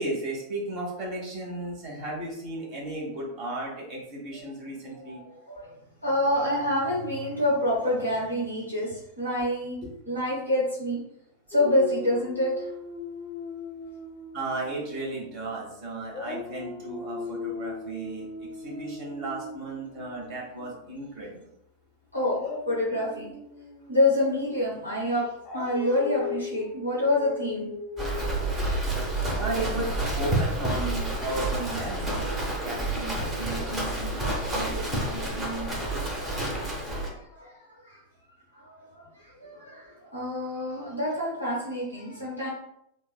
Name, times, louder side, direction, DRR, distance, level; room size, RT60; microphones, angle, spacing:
voice 1, 0.0-5.2 14.3-21.5 29.4-35.7, right 2 dB, 40° right, -3 dB, 1.0 m, -35 dB
voice 2, 6.0-9.8 10.1-11.0 11.5-12.7 22.1-23.3 23.9-27.7 36.9-38.0 38.5-42.5, left 1 dB, 85° right, -7 dB, 1.0 m, -27 dB
Dog, 11.5-15.7 16.1-21.1 22.2-29.2, left 3 dB, 30° left, 0.5 m, -38 dB
Livestock farm animals working animals, 28.0-37.1, right 1 dB, 20° right, 0.7 m, -29 dB
2.9 x 2.0 x 2.2 m, 0.76 s
figure-of-eight pair, 90°, 0 cm